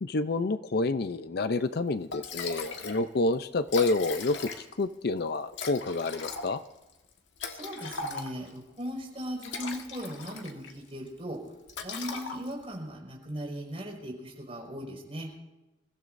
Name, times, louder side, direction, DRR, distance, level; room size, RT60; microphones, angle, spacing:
voice 1, 0.0-6.6, left 3 dB, 55° left, 12 dB, 0.5 m, -28 dB
Liquid, 1.7-1.8 2.1-3.0 3.3-3.4 3.6-4.9 5.5-8.6 9.2-10.8 11.1-11.3 11.7-12.7, left 4 dB, 80° left, 1.5 m, -39 dB
voice 2, 7.5-11.4 11.8-15.3, equal, 35° right, -2 dB, 5.1 m, -38 dB
28.0 x 15.5 x 2.6 m, 1.1 s
head